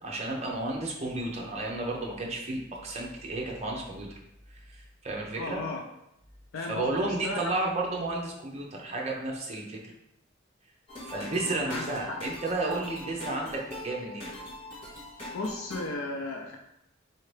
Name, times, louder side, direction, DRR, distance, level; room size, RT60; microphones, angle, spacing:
voice 1, 0.0-4.2 4.5-5.6 6.6-9.9 11.0-14.3, right 2 dB, 30° right, -1 dB, 0.7 m, -32 dB
voice 2, 5.4-5.8 6.5-7.5 11.2-11.3 11.7-12.2 15.3-16.6, left 2 dB, 80° left, 2 dB, 0.4 m, -35 dB
sound 1, 10.9-15.9, left 1 dB, 25° left, 1.3 m, -41 dB
4.3 x 2.8 x 3.2 m, 0.84 s
head